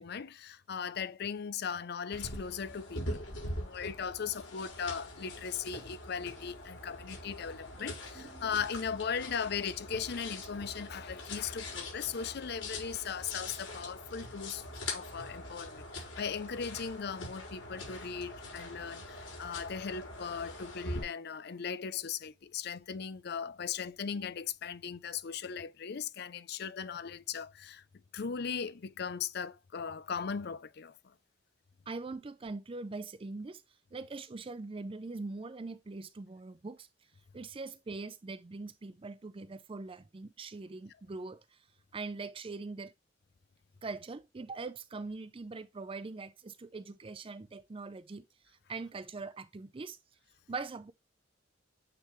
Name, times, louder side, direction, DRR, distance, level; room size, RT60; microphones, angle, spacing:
voice 1, 0.0-3.3 3.6-14.6 14.9-27.8 28.1-31.1, left 6 dB, 55° left, 0.5 m, -38 dB
sound 1, 2.1-21.0, left 2 dB, 85° left, 4.5 m, -43 dB
voice 2, 7.8-8.6 31.9-33.6 33.9-36.9 37.3-41.4 41.9-42.9 43.8-48.2 48.7-50.0 50.5-50.9, right 3 dB, 30° right, 0.4 m, -42 dB
8.8 x 3.8 x 3.1 m
head